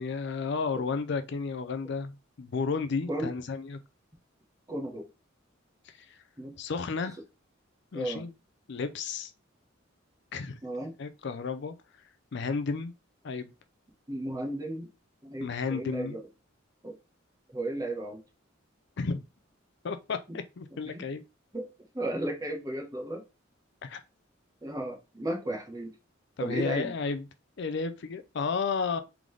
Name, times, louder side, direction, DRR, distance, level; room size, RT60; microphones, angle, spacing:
voice 1, 0.0-3.8 6.1-6.2 6.6-7.2 7.9-8.3 8.7-9.3 10.3-10.6 11.0-11.7 12.3-12.9 13.2-13.5 15.4-16.2 19.0-19.2 19.8-21.2 23.8-24.0 26.4-27.2 27.6-29.0, left 4 dB, 60° left, 0.5 m, -32 dB
voice 2, 4.7-5.1 6.4-6.6 7.9-8.2 10.6-10.9 14.1-14.9 15.2-16.2 16.8-17.0 17.5-18.2 20.3-20.4 20.8-21.0 21.5-21.7 21.9-23.2 24.6-25.9 26.4-26.9, right 1 dB, 20° right, 1.0 m, -34 dB
3.8 x 3.5 x 3.1 m
head